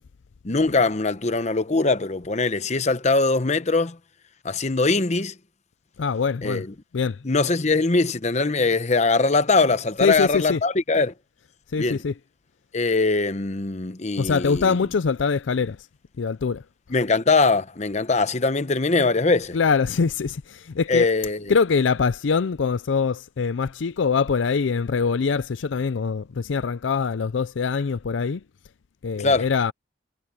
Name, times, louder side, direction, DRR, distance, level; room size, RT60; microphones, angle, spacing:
voice 1, 0.4-4.0 4.4-5.3 6.4-6.7 7.2-11.1 11.8-12.0 12.7-14.8 16.9-19.6 20.9-21.5 29.2-29.4, left 3 dB, 40° left, 0.9 m, -22 dB
voice 2, 6.0-6.6 6.9-7.2 10.0-10.6 11.7-12.1 14.2-15.8 16.2-16.6 19.5-21.1 21.5-28.4 29.0-29.7, left 5 dB, 90° left, 0.5 m, -23 dB
head